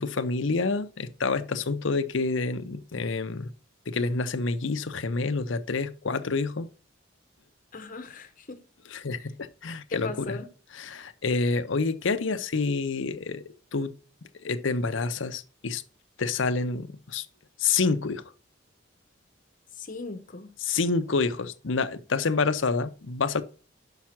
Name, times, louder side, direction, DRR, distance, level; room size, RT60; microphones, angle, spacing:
voice 1, 0.0-3.5 3.9-6.7 8.9-10.4 10.8-13.9 14.4-15.8 16.2-17.3 17.6-18.2 20.6-23.4, left 4 dB, 75° left, 0.7 m, -28 dB
voice 2, 7.7-8.6 9.9-10.5 19.8-20.5, left 3 dB, 45° left, 1.0 m, -38 dB
5.8 x 5.6 x 5.9 m
head